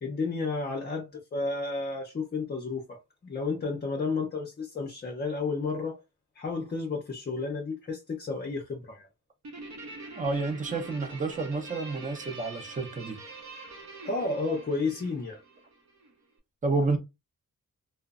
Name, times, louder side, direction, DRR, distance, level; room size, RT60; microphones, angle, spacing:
voice 1, 0.0-6.0 6.4-9.1 14.0-15.4, left 3 dB, 30° left, 0.6 m, -32 dB
Guitar, 9.4-16.1, right 3 dB, 55° right, 0.8 m, -45 dB
voice 2, 10.1-13.2 16.6-17.0, right 3 dB, 25° right, 0.6 m, -29 dB
3.0 x 2.0 x 2.4 m
wide cardioid pair, 110°, 32 cm